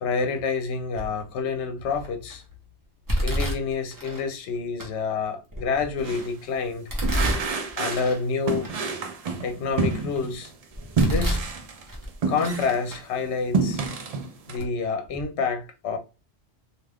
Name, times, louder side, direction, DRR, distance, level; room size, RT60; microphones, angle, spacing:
voice 1, 0.0-2.4 3.2-6.9 7.8-8.7 9.4-10.5 11.0-11.4 12.3-13.8 14.5-16.0, left 5 dB, 75° left, 0.8 m, -28 dB
Domestic sounds home sounds, 0.9-1.3 1.9-2.3 3.1-4.2 4.8-4.9 5.5-6.2 6.9-8.2 8.6-8.7 9.3-10.2 10.7-11.5 11.9-12.6 12.9-13.0 13.8-13.9 14.6-14.7 15.0-15.2, equal, 20° right, 0.6 m, -29 dB
sound 1, 6.0-6.3 7.0-8.1 8.5-10.5 11.0-12.9 13.3-14.6, right 4 dB, 65° right, 0.3 m, -28 dB
2.4 x 2.3 x 3.3 m
omnidirectional pair, 1.2 m